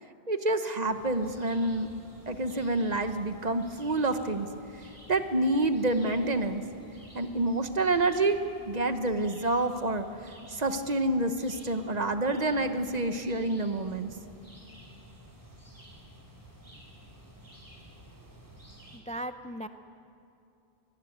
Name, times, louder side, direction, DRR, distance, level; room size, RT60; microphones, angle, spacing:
voice 1, 0.3-1.9 2.3-4.5 5.1-6.6 7.1-8.4 8.7-10.0 10.5-14.1, right 2 dB, 40° right, 8 dB, 1.1 m, -28 dB
sound 1, 0.9-19.0, right 1 dB, 20° right, 3.4 m, -52 dB
voice 2, 18.9-19.7, right 1 dB, 10° left, 9 dB, 0.4 m, -37 dB
23.0 x 17.0 x 9.3 m, 2.6 s
omnidirectional pair, 1.1 m